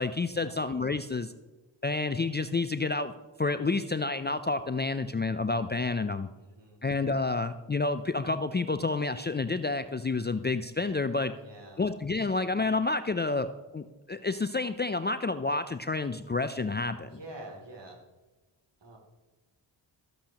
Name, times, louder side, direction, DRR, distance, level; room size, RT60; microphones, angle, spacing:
voice 1, 0.0-1.3 1.8-3.1 3.4-6.3 6.8-11.3 11.8-17.2, left 3 dB, 20° left, 11 dB, 0.5 m, -29 dB
voice 2, 6.4-6.8 11.4-11.8 17.1-18.0 18.8-19.0, right 1 dB, 55° right, 0 dB, 3.0 m, -46 dB
13.5 x 8.3 x 3.0 m, 1.2 s
supercardioid pair, 40°, 50 cm